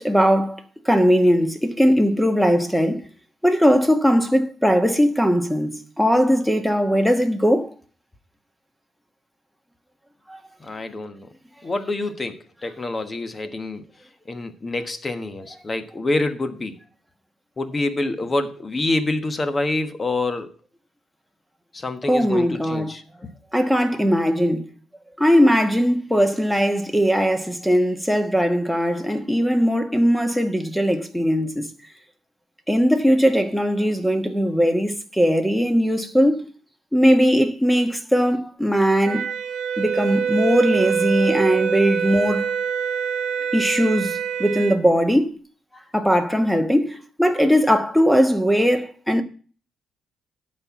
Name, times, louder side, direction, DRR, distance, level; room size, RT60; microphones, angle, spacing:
voice 1, 0.0-3.0 3.4-7.7 10.3-10.4 22.1-22.9 23.5-24.7 25.2-31.7 32.7-36.5 36.9-39.3 39.8-42.5 43.5-45.4 45.9-49.2, equal, ahead, 1.3 m, -19 dB
voice 2, 10.6-11.3 11.6-13.9 14.3-16.8 17.6-20.5 21.7-23.3, left 2 dB, 30° left, 1.2 m, -27 dB
Wind instrument woodwind instrument, 39.1-44.8, right 7 dB, 70° right, 0.9 m, -25 dB
11.0 x 4.3 x 7.2 m
cardioid pair, 90°, 0 cm